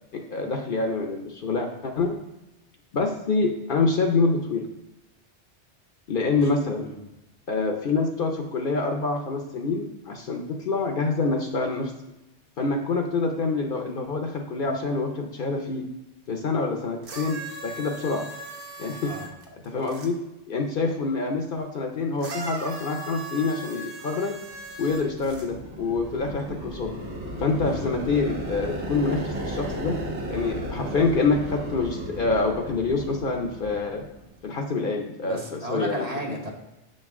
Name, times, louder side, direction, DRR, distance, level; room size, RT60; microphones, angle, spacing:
voice 1, 0.1-2.2 2.9-4.7 6.1-6.9 7.5-11.9 12.6-15.9 16.3-18.3 18.8-19.2 19.6-20.2 20.5-24.4 24.8-26.9 27.4-30.0 30.3-34.0 34.4-36.1, left 3 dB, 55° left, 3 dB, 0.7 m, -26 dB
sound 1, 17.0-20.1 22.2-25.5 26.4-26.5, right 3 dB, 55° right, 1.0 m, -39 dB
sound 2, 24.6-34.4, equal, 75° right, 1.4 m, -35 dB
voice 2, 35.2-36.5, right 1 dB, 35° right, -1 dB, 1.1 m, -33 dB
6.6 x 5.3 x 3.6 m, 0.97 s
omnidirectional pair, 1.2 m